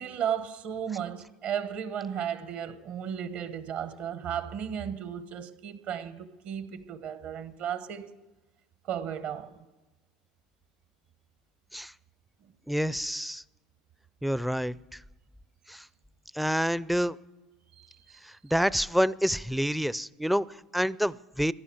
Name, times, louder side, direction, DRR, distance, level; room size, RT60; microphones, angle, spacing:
voice 1, 0.0-8.1 8.8-9.6 17.8-18.1, right 8 dB, 55° right, 1.2 m, -34 dB
voice 2, 12.7-13.4 14.2-15.0 15.7-15.8 16.3-17.2 18.2-21.5, equal, ahead, 0.4 m, -28 dB
15.5 x 11.5 x 7.2 m
hypercardioid pair, 80°, 3 cm